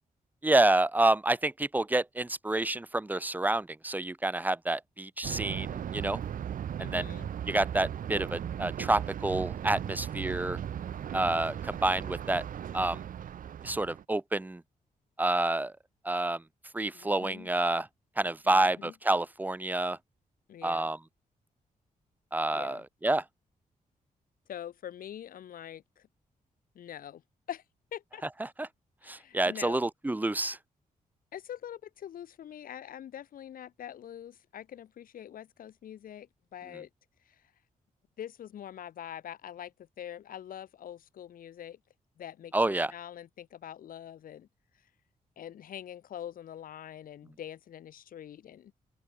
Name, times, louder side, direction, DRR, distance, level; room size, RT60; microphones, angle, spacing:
voice 1, 0.4-6.2 6.8-7.1 7.5-10.6 11.1-12.4 12.7-13.0 13.6-14.6 15.2-15.7 16.0-16.4 16.7-17.9 18.2-20.0 20.6-21.0 22.3-23.2 28.4-28.7 29.1-30.6 42.5-42.9, right 2 dB, 10° right, 1.6 m, -28 dB
Thunder, 5.2-14.0, right 9 dB, 75° right, 4.7 m, -37 dB
voice 2, 6.8-7.3 16.9-17.5 18.4-18.9 20.5-20.9 22.5-22.8 24.5-26.1 26.8-27.2 27.5-27.6 27.9-28.2 29.0-29.9 31.3-36.9 37.3-37.4 38.2-41.8 42.2-44.5 45.4-48.7, left 10 dB, 90° left, 7.1 m, -44 dB
open air
wide cardioid pair, 135°, 14 cm